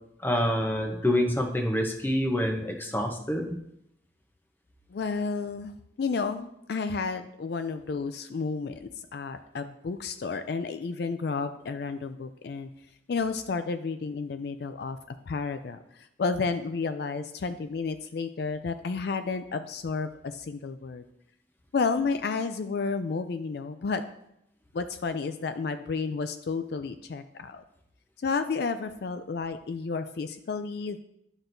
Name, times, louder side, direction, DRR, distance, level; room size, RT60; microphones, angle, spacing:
voice 1, 0.2-3.6, left 1 dB, 10° left, 3 dB, 0.8 m, -27 dB
voice 2, 4.9-5.7 6.0-12.7 13.1-21.0 21.7-24.0 24.7-27.6 28.2-31.0, left 4 dB, 60° left, 9 dB, 0.4 m, -31 dB
11.5 x 6.0 x 2.6 m, 0.79 s
head